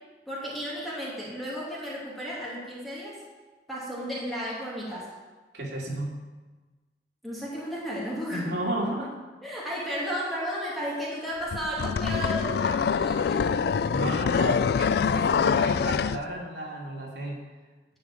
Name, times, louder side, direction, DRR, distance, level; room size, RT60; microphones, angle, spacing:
voice 1, 0.3-3.1 3.7-5.1 7.2-8.5 9.4-13.7, equal, ahead, -7 dB, 2.6 m, -33 dB
voice 2, 5.5-6.2 8.3-9.1 13.9-17.4, right 1 dB, 70° right, -2 dB, 2.6 m, -33 dB
sound 1, 11.5-16.2, left 6 dB, 65° left, 0.3 m, -25 dB
12.0 x 5.2 x 8.8 m, 1.3 s
head